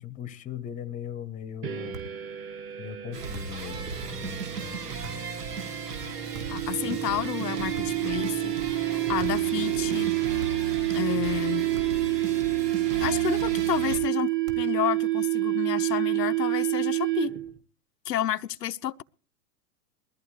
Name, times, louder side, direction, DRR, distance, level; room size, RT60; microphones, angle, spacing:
voice 1, 0.0-2.0 2.8-4.8 6.8-7.0, left 9 dB, 15° left, 0.8 m, -39 dB
sound 1, 1.6-17.6, right 17 dB, 25° right, 1.5 m, -29 dB
sound 2, 1.9-2.2 3.3-3.7 5.0-5.3 6.3-6.7 7.7-8.1 9.2-9.5 10.4-10.8 11.7-12.1 13.0-13.4 14.4-14.8, right 4 dB, 55° right, 2.7 m, -43 dB
sound 3, 3.1-14.0, right 4 dB, 75° right, 2.2 m, -36 dB
voice 2, 6.5-10.1 10.9-11.7 13.0-17.4 18.1-19.0, left 11 dB, 85° left, 0.6 m, -31 dB
20.5 x 14.0 x 3.1 m
hypercardioid pair, 110°, 48 cm